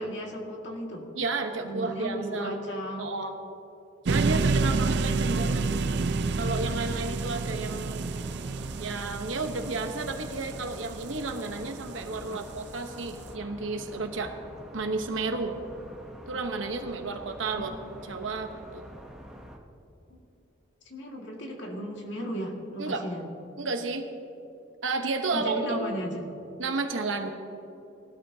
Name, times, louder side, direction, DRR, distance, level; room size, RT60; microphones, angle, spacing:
voice 1, 0.0-1.0 1.6-3.1 12.2-12.4 17.5-17.7 20.9-23.3 25.3-26.3, equal, 70° left, 0 dB, 2.0 m, -35 dB
voice 2, 1.2-2.6 3.0-3.3 4.0-5.7 6.4-8.1 8.8-14.3 14.7-15.5 16.3-17.7 18.1-18.9 22.8-23.0 23.6-24.1 24.8-25.9 26.6-27.3, right 3 dB, 90° right, 5 dB, 1.0 m, -32 dB
sound 1, 4.1-12.1, right 3 dB, 60° right, 0.4 m, -29 dB
sound 2, 5.7-19.6, equal, 5° right, 1.0 m, -46 dB
19.0 x 13.0 x 2.8 m, 2.9 s
head